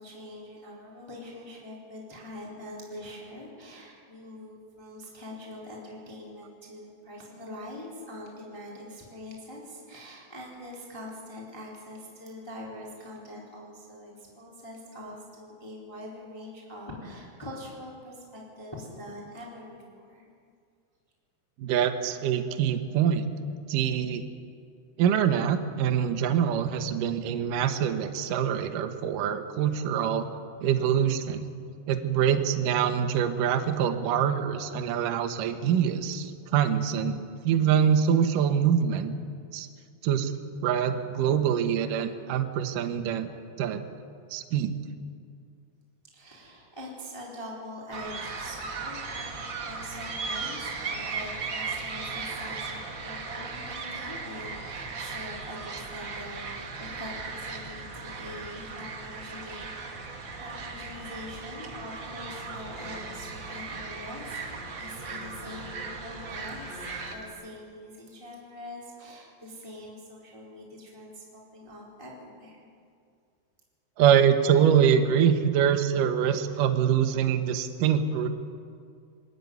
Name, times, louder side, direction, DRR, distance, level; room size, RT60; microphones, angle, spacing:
voice 1, 0.0-19.8 20.1-20.3 46.1-72.6, left 1 dB, 5° left, -4 dB, 3.5 m, -43 dB
voice 2, 21.6-23.3 23.7-24.2 25.0-30.3 30.6-31.4 31.9-39.1 39.5-39.7 40.0-40.3 40.6-43.3 43.6-43.8 44.3-44.7 74.0-78.3, right 8 dB, 70° right, 7 dB, 2.1 m, -24 dB
sound 1, 47.9-67.1, right 4 dB, 85° right, 1.0 m, -37 dB
Singing, 62.3-67.3, left 2 dB, 75° left, 8.8 m, -49 dB
23.0 x 14.0 x 9.5 m, 2.3 s
omnidirectional pair, 5.3 m